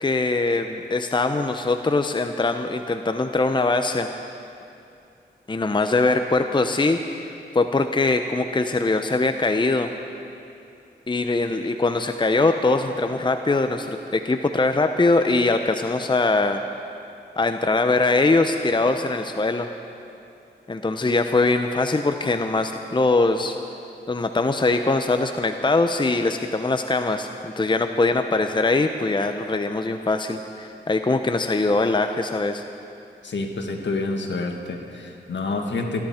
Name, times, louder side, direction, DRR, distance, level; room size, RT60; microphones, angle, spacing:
voice 1, 0.0-4.1 5.5-7.3 7.5-9.9 11.1-16.6 17.4-19.7 20.7-23.6 24.1-32.6, left 3 dB, 25° left, 7 dB, 0.7 m, -22 dB
voice 2, 33.2-36.1, left 3 dB, 70° left, 3 dB, 1.8 m, -28 dB
25.5 x 10.5 x 4.4 m, 2.6 s
cardioid pair, 45°, 20 cm